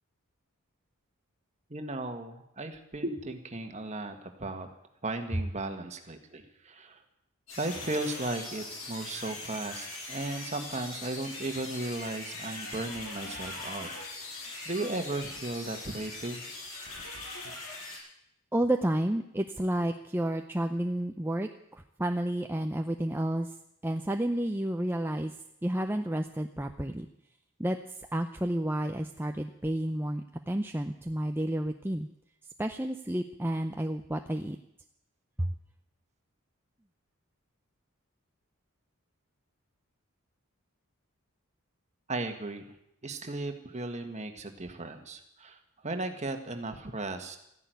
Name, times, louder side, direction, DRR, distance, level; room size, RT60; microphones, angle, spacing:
voice 1, 1.7-4.7 5.0-7.0 7.6-13.9 14.2-14.3 14.6-16.4 42.1-42.7 43.0-47.4, right 2 dB, 30° right, 6 dB, 1.6 m, -36 dB
sound 1, 7.5-18.0, left 2 dB, 70° left, 7.4 m, -41 dB
voice 2, 18.5-21.5 22.0-23.5 23.8-25.3 25.6-27.1 27.6-27.8 28.1-32.1 32.6-34.6 35.4-35.5, right 1 dB, 10° right, 5 dB, 0.6 m, -30 dB
14.0 x 11.0 x 9.3 m, 0.79 s
head